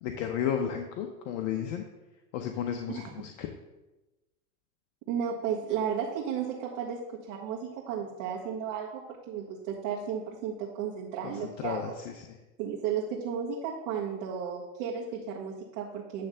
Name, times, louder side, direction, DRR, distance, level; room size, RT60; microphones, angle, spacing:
voice 1, 0.0-1.8 2.3-3.5 11.2-12.2, left 9 dB, 60° left, 4 dB, 1.0 m, -33 dB
voice 2, 5.1-11.9 12.6-16.3, right 7 dB, 55° right, -4 dB, 1.8 m, -34 dB
9.9 x 3.4 x 6.8 m, 1.1 s
hypercardioid pair, 115°, 45 cm